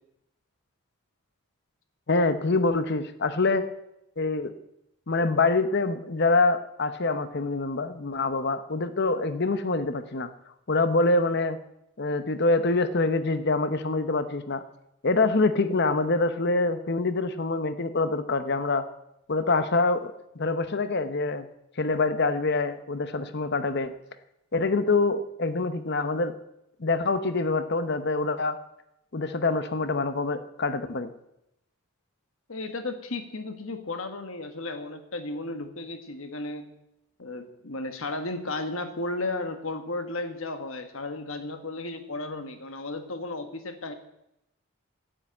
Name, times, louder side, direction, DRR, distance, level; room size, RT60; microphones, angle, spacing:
voice 1, 2.1-3.7 4.2-4.5 5.1-10.3 10.7-11.6 12.0-14.6 15.0-18.8 19.3-21.5 21.8-23.9 24.5-26.3 26.8-28.6 29.1-31.1, left 3 dB, 50° left, 11 dB, 0.8 m, -25 dB
voice 2, 32.5-36.7 37.2-43.9, left 2 dB, 65° left, 8 dB, 1.4 m, -34 dB
9.9 x 8.6 x 8.9 m, 0.84 s
head